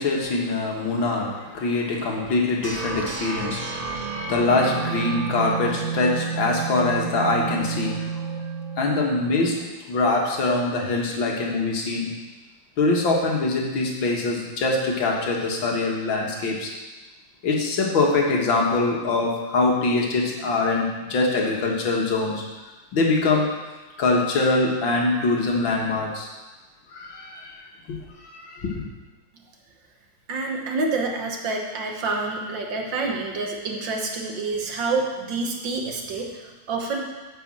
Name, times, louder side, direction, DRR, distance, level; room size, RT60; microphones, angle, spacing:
voice 1, 0.0-8.1 8.8-9.6 9.9-12.1 12.8-16.7 17.4-22.4 22.9-23.5 24.0-26.3 26.9-27.6 27.9-28.9, left 3 dB, 65° left, -1 dB, 2.3 m, -23 dB
sound 1, 2.6-9.6, right 6 dB, 35° right, 0.9 m, -30 dB
voice 2, 30.3-37.0, right 3 dB, 65° right, 1 dB, 1.8 m, -28 dB
9.9 x 5.3 x 7.6 m, 1.2 s
omnidirectional pair, 2.3 m